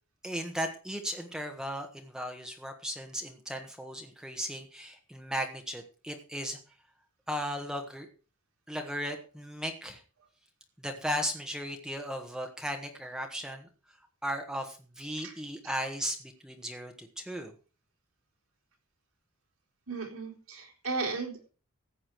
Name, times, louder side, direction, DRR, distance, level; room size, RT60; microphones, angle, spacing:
voice 1, 0.2-6.6 7.3-8.1 8.7-10.0 10.8-13.7 14.2-17.5, equal, 5° right, 3 dB, 1.4 m, -36 dB
voice 2, 19.9-21.5, right 3 dB, 75° right, 1 dB, 4.0 m, -35 dB
14.5 x 8.5 x 4.7 m, 0.36 s
head